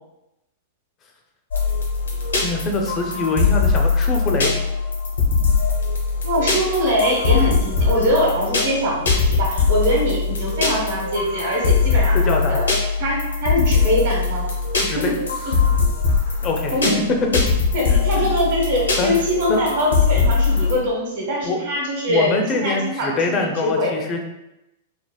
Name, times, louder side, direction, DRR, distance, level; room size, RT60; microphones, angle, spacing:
sound 1, 1.5-20.7, left 4 dB, 80° left, 0.7 m, -21 dB
voice 1, 2.4-4.5 12.1-12.6 14.8-15.1 16.4-16.7 17.9-18.3 19.0-19.1 19.5-19.6 21.4-21.6 22.1-24.2, left 3 dB, 30° left, 3 dB, 0.4 m, -24 dB
voice 2, 6.2-12.6 13.0-14.5 15.0-15.1 16.7-17.0 17.7-23.9, equal, 60° right, -2 dB, 1.0 m, -22 dB
3.3 x 2.0 x 2.2 m, 0.91 s
figure-of-eight pair, 100°, 0 cm